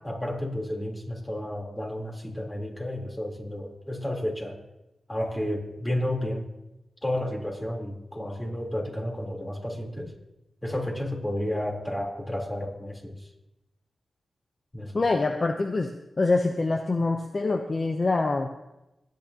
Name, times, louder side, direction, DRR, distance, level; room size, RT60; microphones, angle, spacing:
voice 1, 0.0-4.6 5.1-6.5 7.0-10.1 10.6-13.3 14.7-15.0, left 1 dB, 20° left, 0 dB, 3.5 m, -31 dB
voice 2, 14.9-15.9 16.2-18.5, left 3 dB, 45° left, 6 dB, 0.7 m, -25 dB
25.5 x 9.3 x 2.9 m, 0.95 s
cardioid pair, 50°, 0 cm